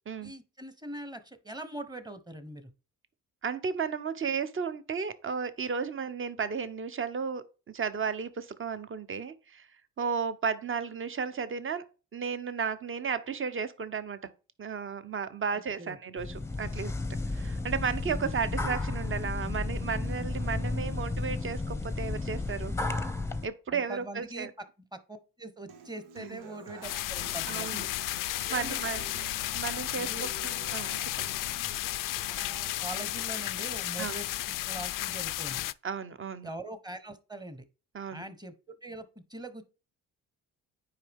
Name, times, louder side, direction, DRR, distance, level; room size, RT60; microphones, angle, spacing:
voice 1, 0.2-2.7 15.5-16.0 23.7-24.5 24.9-27.8 28.5-28.8 30.0-30.3 32.3-35.6 36.4-37.6 38.1-38.5 38.8-39.6, right 1 dB, 10° right, 1.1 m, -42 dB
voice 2, 3.4-9.7 10.0-11.8 12.1-14.2 14.6-16.9 17.3-22.7 23.4-24.5 26.2-26.4 27.5-27.9 28.3-29.1 29.5-31.3 34.0-34.1 35.8-36.5 37.9-38.2, right 6 dB, 30° right, 0.9 m, -34 dB
sound 1, 16.2-23.5, left 3 dB, 5° left, 0.7 m, -33 dB
Human voice / Acoustic guitar, 25.7-33.7, right 6 dB, 75° right, 0.9 m, -50 dB
sound 2, 26.8-35.7, left 16 dB, 55° left, 0.4 m, -33 dB
9.5 x 4.7 x 3.6 m
hypercardioid pair, 55°, 39 cm